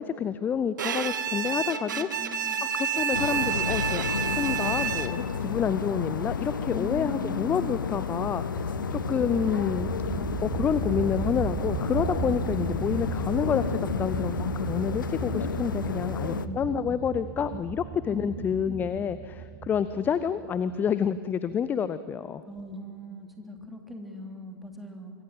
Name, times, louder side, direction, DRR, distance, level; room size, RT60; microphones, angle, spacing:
voice 1, 0.0-9.9 10.4-22.4, left 7 dB, 15° left, 15 dB, 0.6 m, -29 dB
Bowed string instrument, 0.8-5.4, right 8 dB, 55° right, 1.4 m, -29 dB
voice 2, 1.9-2.6 6.7-7.8 16.3-16.7 18.1-18.3 18.6-18.8 22.4-25.1, equal, ahead, 3 dB, 3.0 m, -40 dB
sound 1, 3.1-16.5, left 6 dB, 65° left, 1.0 m, -31 dB
sound 2, 8.5-20.9, right 9 dB, 20° right, 0.9 m, -36 dB
26.0 x 22.5 x 7.6 m, 2.1 s
figure-of-eight pair, 105°, 12 cm